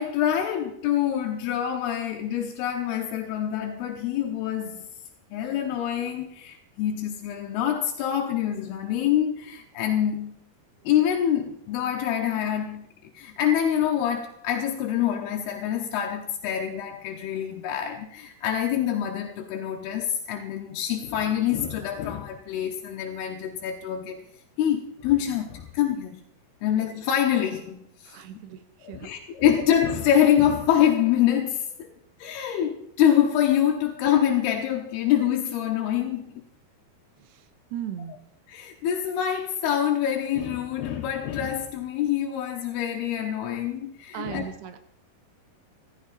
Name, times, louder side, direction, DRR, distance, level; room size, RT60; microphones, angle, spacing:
voice 1, 0.0-4.9 5.3-10.4 10.8-12.9 13.1-24.2 24.6-26.2 26.6-28.2 28.8-31.9 32.2-36.4 38.5-44.4, left 10 dB, 85° left, 3.0 m, -25 dB
voice 2, 28.0-29.2 37.2-38.2 44.1-44.8, right 9 dB, 90° right, 3.2 m, -38 dB
15.5 x 14.0 x 4.2 m
omnidirectional pair, 4.6 m